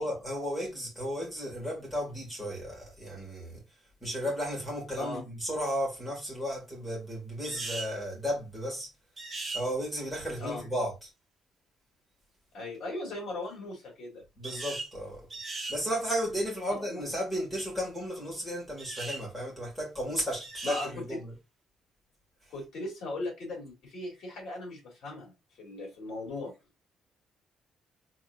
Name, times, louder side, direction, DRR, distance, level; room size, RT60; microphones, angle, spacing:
voice 1, 0.0-3.6 4.0-8.9 9.5-10.9 14.4-15.3 15.7-21.3, equal, ahead, 2.4 m, -34 dB
sound 1, 7.4-7.9 9.2-9.6 14.4-14.9 15.3-15.8 18.8-19.2 20.4-20.9, right 3 dB, 20° right, 1.2 m, -38 dB
voice 2, 12.5-14.2 16.7-17.1 20.6-21.2 22.5-26.5, left 2 dB, 55° left, 2.7 m, -38 dB
4.1 x 3.7 x 2.7 m
cardioid pair, 180°, 0 cm